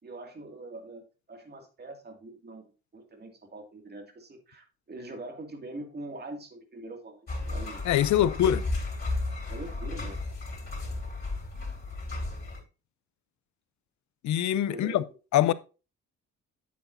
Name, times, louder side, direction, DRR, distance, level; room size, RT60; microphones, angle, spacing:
voice 1, 0.0-8.3 9.5-10.2 14.7-15.0, right 2 dB, 35° right, 2.4 m, -43 dB
sound 1, 7.3-12.6, left 2 dB, 30° left, 4.2 m, -34 dB
voice 2, 7.9-8.6 14.2-15.0 15.3-15.5, left 12 dB, 70° left, 0.6 m, -23 dB
8.4 x 8.0 x 2.6 m
cardioid pair, 90°, 30 cm